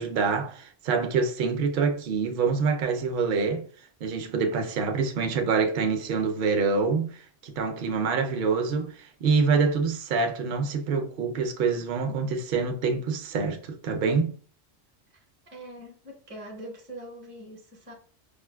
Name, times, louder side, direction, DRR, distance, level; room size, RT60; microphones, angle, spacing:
voice 1, 0.0-3.7 4.0-14.3, right 5 dB, 60° right, 0.6 m, -26 dB
voice 2, 15.1-17.9, right 1 dB, 15° right, 0.5 m, -44 dB
4.8 x 2.3 x 2.2 m
omnidirectional pair, 1.2 m